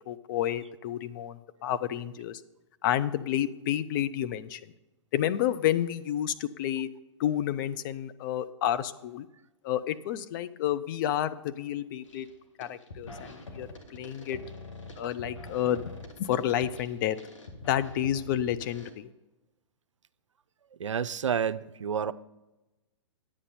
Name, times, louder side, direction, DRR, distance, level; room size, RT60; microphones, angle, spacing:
voice 1, 0.1-2.4 2.8-4.6 5.1-6.9 7.2-9.3 9.6-12.3 12.6-14.4 15.0-15.8 16.2-17.2 17.7-19.1, left 11 dB, 45° left, 0.6 m, -30 dB
sound 1, 12.0-12.3 12.6-18.9, left 2 dB, 85° left, 1.8 m, -45 dB
voice 2, 20.8-22.1, right 7 dB, 85° right, 0.5 m, -29 dB
10.0 x 8.2 x 4.2 m
hypercardioid pair, 120°, 16 cm